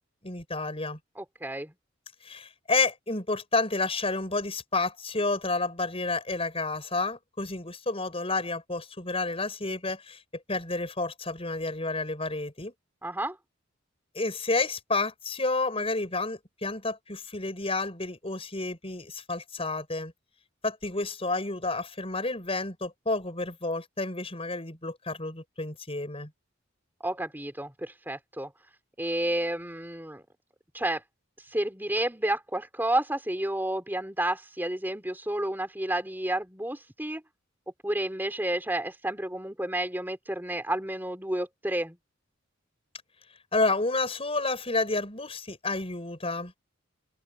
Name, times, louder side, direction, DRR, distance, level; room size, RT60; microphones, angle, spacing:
voice 1, 0.2-1.0 2.2-12.7 14.1-20.1 20.6-26.3 43.5-46.5, left 3 dB, 30° left, 6.3 m, -30 dB
voice 2, 1.2-1.7 13.0-13.4 27.0-28.5 29.0-30.2 30.7-31.0 31.4-37.2 37.8-42.0, right 1 dB, 10° right, 3.7 m, -31 dB
head